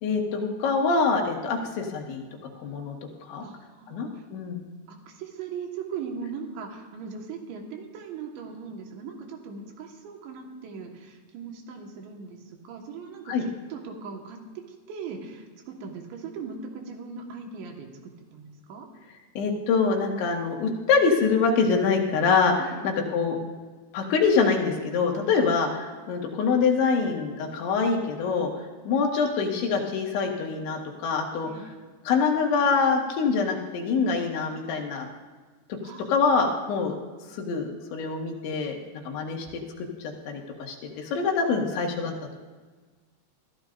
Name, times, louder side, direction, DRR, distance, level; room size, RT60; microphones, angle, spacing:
voice 1, 0.0-2.2 2.6-3.0 3.3-3.5 3.9-4.6 13.3-13.4 19.4-22.5 22.8-23.4 23.9-28.5 28.9-31.5 32.1-35.1 36.1-37.0 37.3-38.8 39.1-39.5 40.2-40.4 40.7-42.3, left 5 dB, 85° left, 1 dB, 4.1 m, -25 dB
voice 2, 3.4-4.3 4.9-14.4 14.9-18.9 22.6-23.0 31.4-31.8 35.8-36.3, right 5 dB, 80° right, 2 dB, 3.9 m, -39 dB
22.5 x 14.5 x 2.6 m, 1.4 s
omnidirectional pair, 5.1 m